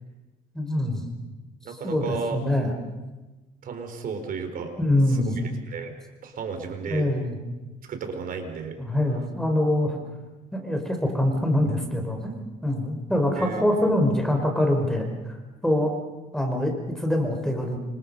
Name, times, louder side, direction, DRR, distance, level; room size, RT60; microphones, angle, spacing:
voice 1, 0.5-1.1 1.7-2.7 4.8-5.4 6.9-7.4 8.8-10.0 10.5-12.3 12.6-15.1 15.6-15.9 16.3-17.8, left 1 dB, 5° left, 3 dB, 4.5 m, -24 dB
voice 2, 1.6-2.4 3.6-4.7 5.1-5.9 6.2-7.1 7.9-8.8 13.4-13.6, right 5 dB, 55° right, 6 dB, 4.5 m, -33 dB
29.0 x 25.5 x 5.5 m, 1.2 s
cardioid pair, 110°, 17 cm